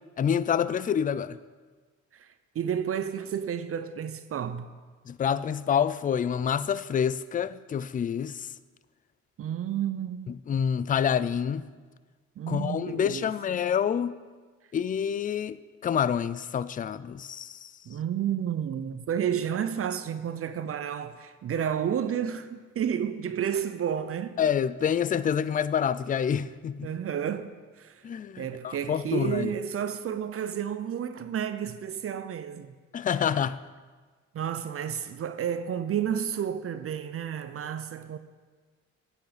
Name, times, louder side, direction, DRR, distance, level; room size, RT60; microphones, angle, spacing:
voice 1, 0.2-1.4 5.1-8.5 10.5-11.7 12.5-14.2 14.7-17.7 24.4-26.9 28.0-29.5 32.9-33.6, left 8 dB, 30° left, 0.4 m, -27 dB
voice 2, 2.1-4.7 9.4-10.3 12.4-13.3 17.9-24.4 26.8-28.0 28.4-32.7 34.3-38.2, right 9 dB, 50° right, 0.6 m, -31 dB
10.5 x 8.5 x 5.0 m
cardioid pair, 90°, 30 cm